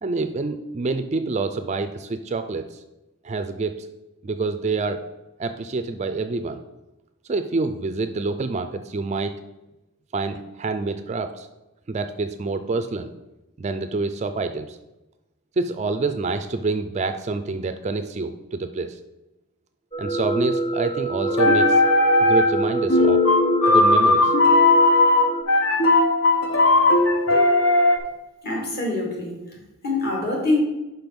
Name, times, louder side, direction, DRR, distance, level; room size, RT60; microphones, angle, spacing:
voice 1, 0.0-2.8 3.2-3.9 4.2-5.0 5.4-6.6 7.2-9.3 10.1-11.5 11.9-13.1 13.6-14.8 15.6-19.0 20.0-21.8 22.2-23.2 23.7-24.3, right 3 dB, 30° right, 9 dB, 0.3 m, -27 dB
sound 1, 19.9-25.4, right 2 dB, 25° left, 0.6 m, -26 dB
sound 2, 21.3-22.6 22.9-28.0, left 2 dB, 65° left, 0.8 m, -17 dB
voice 2, 28.4-30.6, left 2 dB, 45° left, -1 dB, 2.1 m, -25 dB
5.4 x 5.2 x 6.0 m, 0.98 s
head